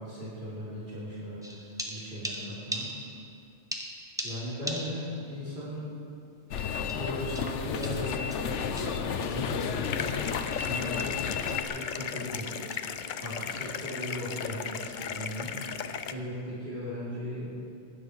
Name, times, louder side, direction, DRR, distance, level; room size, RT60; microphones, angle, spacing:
voice 1, 0.0-2.9 4.2-5.9 6.9-10.1 10.6-12.6 13.2-15.5 16.1-17.5, left 1 dB, 45° right, -9 dB, 3.3 m, -37 dB
sound 1, 1.4-3.4 3.7-5.3 5.6-5.7 6.9-9.1 9.6-9.8 10.1-10.2 10.5-10.7 11.0-11.2 11.5-11.7 12.7-12.9, equal, 5° right, 1.0 m, -40 dB
sound 2, 6.5-11.6, left 7 dB, 85° left, 1.0 m, -32 dB
sound 3, 9.8-16.1, left 7 dB, 55° left, 0.6 m, -36 dB
18.5 x 10.0 x 4.7 m, 2.6 s
omnidirectional pair, 1.2 m